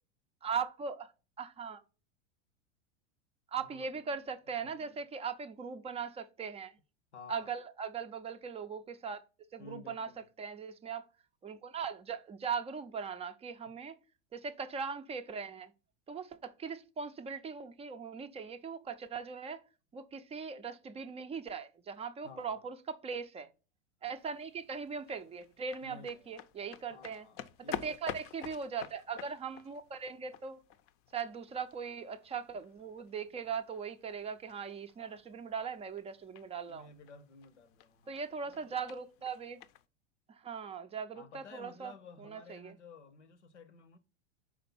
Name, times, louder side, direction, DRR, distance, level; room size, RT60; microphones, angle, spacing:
voice 1, 0.4-1.1 1.4-1.8 3.5-6.7 7.3-9.2 9.5-10.1 10.4-11.0 11.4-14.0 14.3-15.7 16.1-19.6 19.9-23.5 24.0-27.3 27.7-30.6 31.1-36.9 38.1-39.6 40.3-41.9 42.2-42.7, right 6 dB, 20° right, 0.4 m, -40 dB
voice 2, 3.6-4.3 4.6-5.0 7.1-7.5 9.6-10.3 22.2-22.7 25.8-26.4 26.9-28.3 35.0-35.2 36.7-38.8 41.1-44.0, left 4 dB, 85° left, 0.9 m, -54 dB
sound 1, 24.2-39.9, left 11 dB, 40° left, 0.6 m, -50 dB
5.0 x 4.3 x 5.8 m
hypercardioid pair, 95°, 34 cm